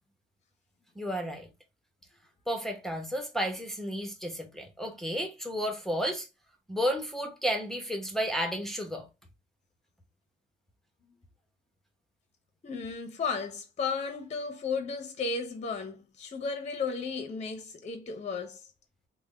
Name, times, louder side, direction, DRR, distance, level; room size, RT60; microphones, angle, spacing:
voice 1, 1.0-1.5 2.5-6.3 6.7-9.1, equal, ahead, 0.8 m, -32 dB
voice 2, 12.6-18.6, left 4 dB, 35° left, 0.7 m, -34 dB
3.4 x 2.1 x 3.5 m
cardioid pair, 90°, 20 cm